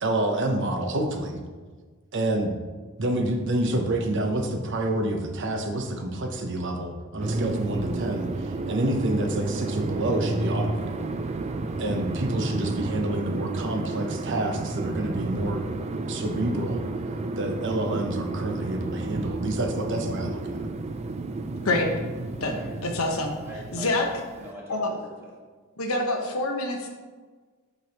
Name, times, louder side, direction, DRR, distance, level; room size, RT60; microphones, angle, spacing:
voice 1, 0.0-1.4 2.1-2.5 3.0-11.0 11.8-15.6 16.1-16.8 17.4-20.6, right 1 dB, 60° right, 3 dB, 0.8 m, -28 dB
sound 1, 7.2-24.5, right 2 dB, 30° right, 0.3 m, -31 dB
voice 2, 21.6-21.9 22.4-23.3 23.7-24.1 24.7-24.9 25.8-26.9, left 2 dB, 85° left, 2 dB, 1.0 m, -26 dB
voice 3, 22.5-24.1 24.4-25.4, right 1 dB, 10° right, -5 dB, 1.5 m, -43 dB
7.9 x 6.1 x 2.9 m, 1.4 s
head